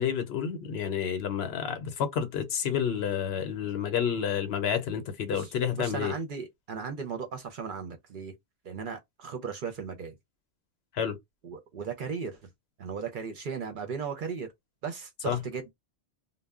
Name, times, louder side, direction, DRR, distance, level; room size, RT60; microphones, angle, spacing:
voice 1, 0.0-6.1 10.9-11.2 15.3-15.4, left 8 dB, 70° left, 0.9 m, -29 dB
voice 2, 5.3-8.4 8.6-10.2 11.4-12.5 12.8-14.5 14.8-15.7, right 6 dB, 55° right, 0.7 m, -36 dB
2.1 x 2.0 x 3.5 m
omnidirectional pair, 1.1 m